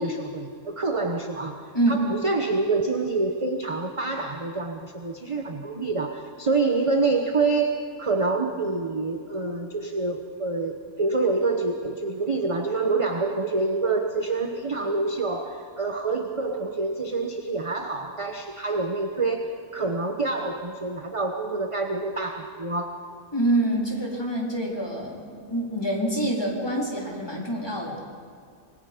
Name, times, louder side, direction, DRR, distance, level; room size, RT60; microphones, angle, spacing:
voice 1, 0.0-1.6 1.9-19.5 19.7-23.0, right 3 dB, 25° right, 4 dB, 1.0 m, -27 dB
voice 2, 23.3-28.0, right 1 dB, 15° left, -2 dB, 3.6 m, -26 dB
25.5 x 22.5 x 5.1 m, 2.3 s
omnidirectional pair, 1.5 m